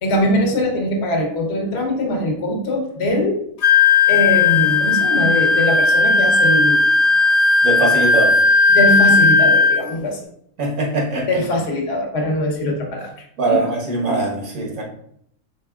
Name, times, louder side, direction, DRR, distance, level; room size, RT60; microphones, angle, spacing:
voice 1, 0.0-3.5 4.1-6.8 8.7-10.3 11.3-13.6, left 1 dB, 50° left, 1 dB, 1.1 m, -21 dB
Wind instrument woodwind instrument, 3.6-9.8, left 4 dB, 75° left, 1.2 m, -15 dB
voice 2, 7.6-8.4 10.6-11.3 13.4-14.8, right 2 dB, 75° right, -1 dB, 1.7 m, -21 dB
4.9 x 4.0 x 2.3 m, 0.70 s
omnidirectional pair, 1.5 m